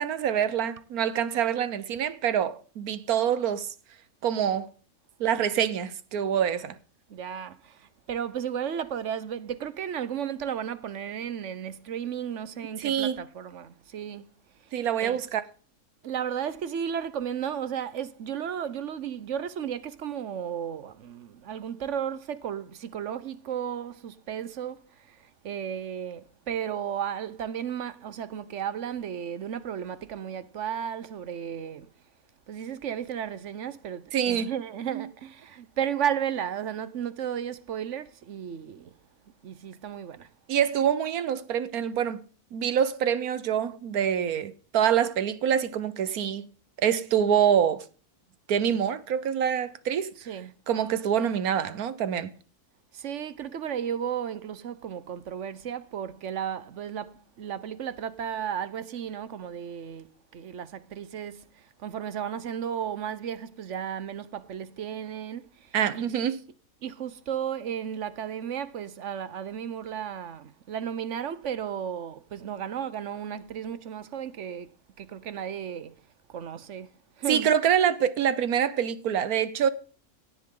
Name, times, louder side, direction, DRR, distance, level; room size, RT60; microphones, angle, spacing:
voice 1, 0.0-3.7 4.2-4.7 5.2-6.8 12.8-13.2 14.7-15.4 34.1-34.5 34.9-35.1 40.5-42.2 42.5-46.5 46.8-47.8 48.5-50.1 50.7-52.3 65.7-66.4 77.3-79.7, right 9 dB, 85° right, 1.4 m, -25 dB
voice 2, 7.1-14.3 15.0-15.2 16.0-31.9 32.5-38.9 39.4-40.3 50.3-50.5 52.9-60.1 60.3-66.1 66.8-74.7 75.0-76.0 76.3-76.9 77.2-77.5, right 8 dB, 60° right, 1.1 m, -34 dB
17.0 x 11.0 x 3.8 m
omnidirectional pair, 1.5 m